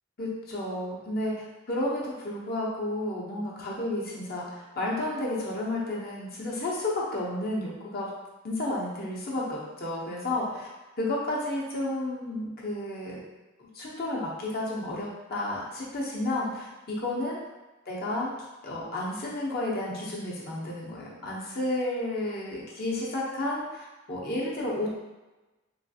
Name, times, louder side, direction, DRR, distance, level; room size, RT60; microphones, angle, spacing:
voice 1, 0.2-8.1 8.4-10.7 11.0-13.2 13.6-17.4 17.9-18.3 18.6-24.9, left 1 dB, 50° left, -5 dB, 0.8 m, -32 dB
3.1 x 3.1 x 2.8 m, 1.1 s
head